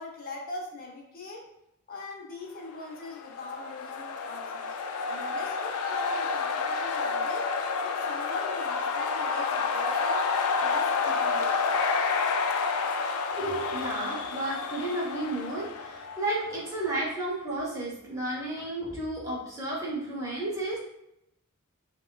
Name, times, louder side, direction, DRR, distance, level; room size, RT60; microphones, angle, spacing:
voice 1, 0.0-1.4 1.9-4.7 5.1-7.5 7.8-10.3 10.6-11.8, left 2 dB, 40° left, -2 dB, 0.8 m, -41 dB
sound 1, 3.0-16.7, left 4 dB, 65° left, 0.3 m, -29 dB
voice 2, 13.3-20.8, right 1 dB, 15° right, -6 dB, 1.0 m, -32 dB
4.1 x 2.4 x 2.3 m, 0.82 s
head